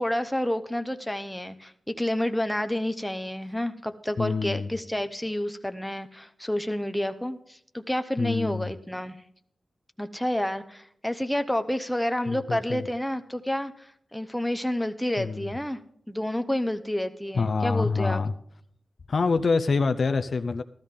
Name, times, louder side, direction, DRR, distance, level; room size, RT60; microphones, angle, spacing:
voice 1, 0.0-9.2 10.0-15.8 16.1-18.2, left 1 dB, 5° left, 8 dB, 0.8 m, -29 dB
voice 2, 4.2-4.7 8.2-8.7 12.3-12.8 15.2-15.5 17.3-18.3 19.1-20.6, left 4 dB, 55° left, 8 dB, 0.5 m, -26 dB
15.0 x 13.0 x 3.7 m, 0.67 s
wide cardioid pair, 125°, 0 cm